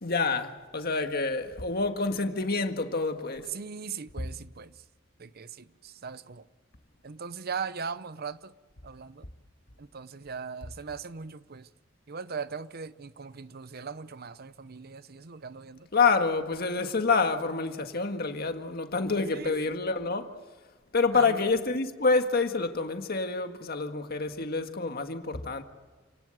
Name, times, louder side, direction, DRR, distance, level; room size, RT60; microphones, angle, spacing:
voice 1, 0.0-3.5 15.9-20.3 20.9-25.6, left 4 dB, 50° left, 1.8 m, -27 dB
voice 2, 3.5-4.8 5.2-6.5 7.0-8.5 8.8-9.3 9.8-11.7 12.1-15.9 19.3-19.7 21.1-21.5, right 5 dB, 50° right, 0.7 m, -39 dB
29.0 x 18.5 x 7.9 m
head